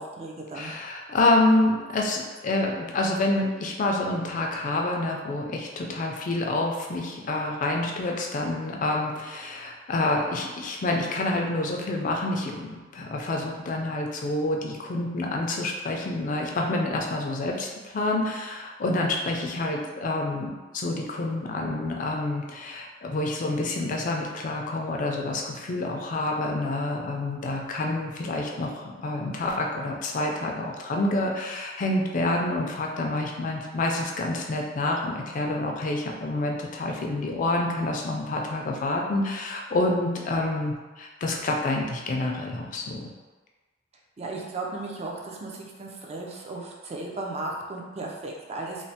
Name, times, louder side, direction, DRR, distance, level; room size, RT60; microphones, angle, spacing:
voice 1, 0.0-0.7 44.2-48.9, right 2 dB, 35° right, -1 dB, 0.4 m, -35 dB
voice 2, 0.5-43.1, left 2 dB, 45° left, 0 dB, 0.4 m, -28 dB
3.1 x 2.0 x 2.7 m, 1.3 s
head